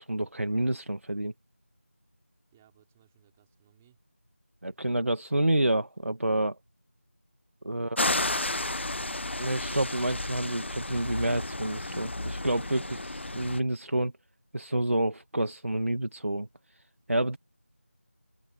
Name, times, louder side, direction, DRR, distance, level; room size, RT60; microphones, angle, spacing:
voice 1, 0.0-1.3 4.6-6.6 7.6-8.0 9.4-14.1 14.5-16.5 17.1-17.4, right 1 dB, 70° right, 2.0 m, -28 dB
voice 2, 2.5-4.0 7.6-8.1, right 12 dB, 5° right, 4.6 m, -64 dB
sound 1, 8.0-13.6, left 2 dB, 55° left, 0.8 m, -32 dB
figure-of-eight pair, 175°, 8 cm